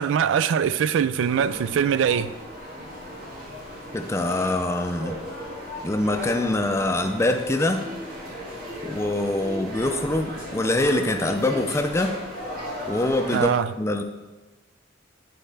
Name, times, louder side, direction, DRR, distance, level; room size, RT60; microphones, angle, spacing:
voice 1, 0.0-2.3 13.3-13.7, right 7 dB, 90° right, 0.3 m, -22 dB
sound 1, 1.2-13.4, equal, 50° right, 1.7 m, -36 dB
voice 2, 3.9-5.2 5.8-7.8 8.8-12.2 12.9-13.5 13.8-14.0, left 2 dB, 15° left, 0.4 m, -24 dB
8.3 x 4.2 x 3.4 m
head